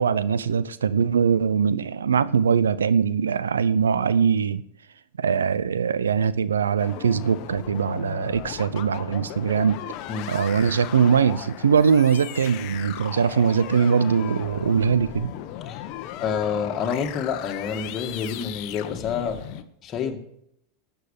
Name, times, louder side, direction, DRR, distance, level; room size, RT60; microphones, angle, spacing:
voice 1, 0.0-4.6 5.2-9.8 10.3-15.3, right 6 dB, 85° right, 0.6 m, -22 dB
sound 1, 6.8-19.6, left 12 dB, 55° left, 1.1 m, -37 dB
voice 2, 16.2-19.4 19.8-20.2, left 6 dB, 35° left, 2.2 m, -28 dB
12.5 x 8.0 x 6.7 m
hypercardioid pair, 100°, 0 cm